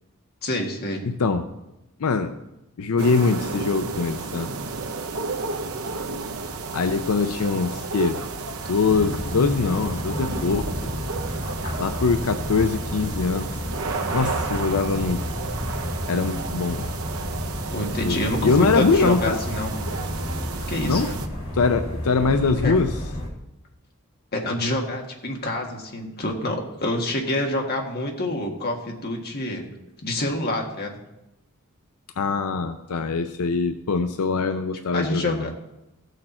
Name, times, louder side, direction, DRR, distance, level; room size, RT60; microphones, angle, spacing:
voice 1, 0.4-1.0 17.7-19.7 20.7-21.1 22.6-22.8 24.3-29.6 30.0-31.0 34.9-35.5, left 1 dB, 45° left, 1 dB, 1.7 m, -27 dB
voice 2, 1.0-1.5 2.0-2.4 2.8-4.5 6.7-8.2 8.7-10.9 11.8-13.5 14.1-15.2 16.1-16.9 18.0-19.4 20.9-21.1 21.5-22.9 32.2-35.5, left 4 dB, 85° left, 8 dB, 0.5 m, -23 dB
sound 1, 3.0-21.3, right 3 dB, 70° right, 0.8 m, -32 dB
sound 2, 6.4-13.5, equal, 5° left, 2.6 m, -47 dB
sound 3, 8.9-23.3, left 1 dB, 70° left, 2.5 m, -31 dB
15.5 x 6.6 x 4.3 m, 0.92 s
head